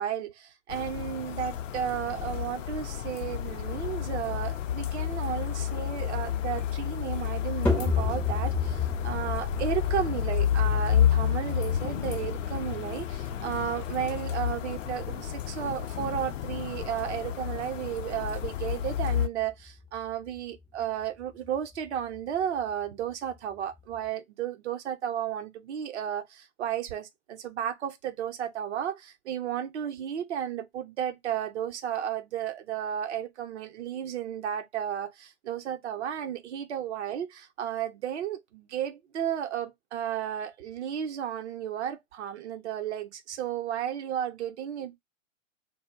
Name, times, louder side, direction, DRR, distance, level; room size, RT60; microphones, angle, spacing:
voice 1, 0.0-45.0, right 9 dB, 60° right, 0.6 m, -33 dB
sound 1, 0.7-19.3, left 10 dB, 70° left, 0.5 m, -30 dB
sound 2, 7.7-24.1, left 4 dB, 5° left, 0.4 m, -36 dB
2.1 x 2.1 x 3.4 m
hypercardioid pair, 120°, 40 cm